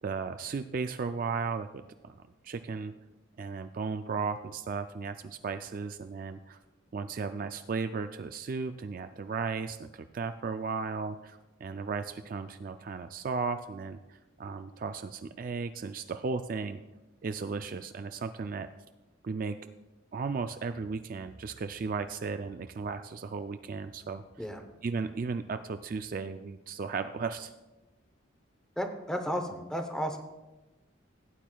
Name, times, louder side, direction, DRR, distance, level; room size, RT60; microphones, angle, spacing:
voice 1, 0.0-2.9 3.4-6.6 6.9-16.8 17.2-18.7 19.2-19.6 20.1-24.2 24.8-27.5, right 4 dB, 45° right, 9 dB, 0.3 m, -35 dB
Car, 20.1-26.3 26.6-26.7, right 1 dB, 75° left, 3.3 m, -60 dB
voice 2, 28.8-30.2, equal, 5° left, 6 dB, 0.7 m, -33 dB
16.5 x 9.0 x 2.3 m, 1.1 s
head